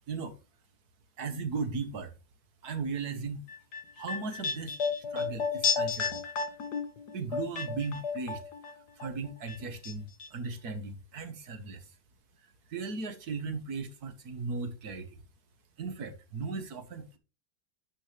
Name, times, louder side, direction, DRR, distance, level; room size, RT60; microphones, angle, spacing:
voice 1, 1.2-2.1 2.6-3.5 3.9-4.8 5.1-6.2 7.1-8.4 9.0-12.0 12.4-15.2 15.8-17.2, right 4 dB, 55° right, 1.7 m, -37 dB
sound 1, 3.5-8.7 9.0-9.9 10.2-10.3, left 5 dB, 65° left, 1.4 m, -32 dB
12.0 x 5.5 x 3.4 m
omnidirectional pair, 2.1 m